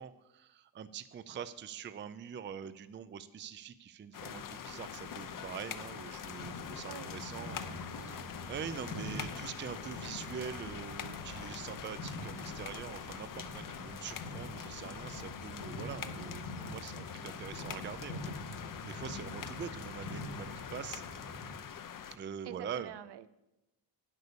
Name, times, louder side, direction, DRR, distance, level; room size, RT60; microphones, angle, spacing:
voice 1, 0.0-7.6 7.9-18.2 18.6-21.0 22.1-22.9, right 8 dB, 25° right, 13 dB, 0.4 m, -44 dB
sound 1, 4.1-22.2, left 8 dB, 45° left, 0.8 m, -44 dB
sound 2, 6.4-21.5, left 1 dB, 90° left, 2.1 m, -45 dB
voice 2, 6.8-8.3 22.4-23.3, right 11 dB, 65° right, 14 dB, 0.7 m, -48 dB
9.6 x 8.2 x 6.9 m, 0.97 s
cardioid pair, 130°, 44 cm